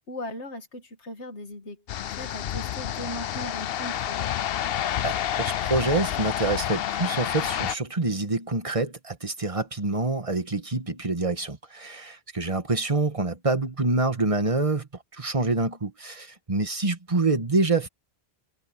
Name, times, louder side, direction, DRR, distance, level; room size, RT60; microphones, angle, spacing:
voice 1, 0.1-4.3, left 1 dB, 85° left, 2.4 m, -38 dB
sound 1, 1.9-7.7, left 11 dB, 65° left, 0.8 m, -29 dB
voice 2, 5.0-17.9, right 3 dB, 30° right, 1.7 m, -26 dB
omnidirectional pair, 1.1 m